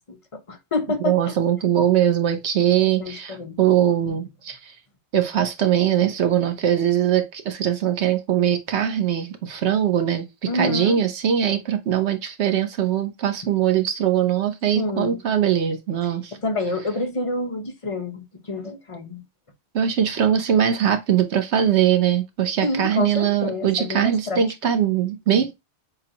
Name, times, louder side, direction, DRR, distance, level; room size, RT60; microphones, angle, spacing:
voice 1, 0.0-1.3 2.8-3.6 4.1-4.2 10.5-11.0 14.7-15.2 16.4-19.2 22.6-24.4, left 2 dB, 35° left, 0.8 m, -28 dB
voice 2, 1.0-4.7 5.1-10.3 10.5-16.3 19.7-25.5, right 9 dB, 75° right, 1.1 m, -21 dB
6.7 x 2.4 x 2.8 m
omnidirectional pair, 1.1 m